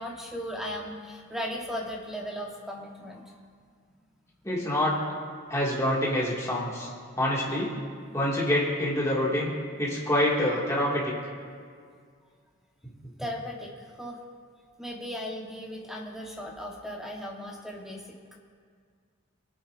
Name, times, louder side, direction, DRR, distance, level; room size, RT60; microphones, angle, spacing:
voice 1, 0.0-3.4 13.2-14.2 14.8-18.2, equal, ahead, -1 dB, 1.0 m, -37 dB
voice 2, 4.4-5.0 5.5-6.9 7.2-7.7 8.1-9.5 9.8-11.2 12.8-12.9, left 1 dB, 15° left, -5 dB, 1.9 m, -26 dB
24.5 x 8.6 x 2.5 m, 2.1 s
head